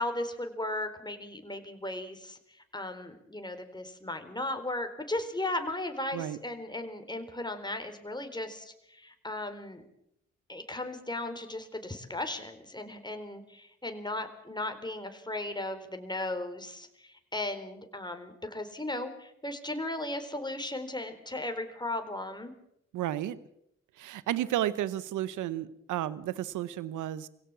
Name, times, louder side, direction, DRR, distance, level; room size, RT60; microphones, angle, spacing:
voice 1, 0.0-2.4 2.7-9.8 10.5-22.5, left 1 dB, 15° left, 6 dB, 4.2 m, -36 dB
voice 2, 22.9-23.4 24.0-27.3, right 12 dB, 80° right, 17 dB, 0.9 m, -32 dB
23.5 x 17.0 x 7.4 m, 0.78 s
hypercardioid pair, 40°, 31 cm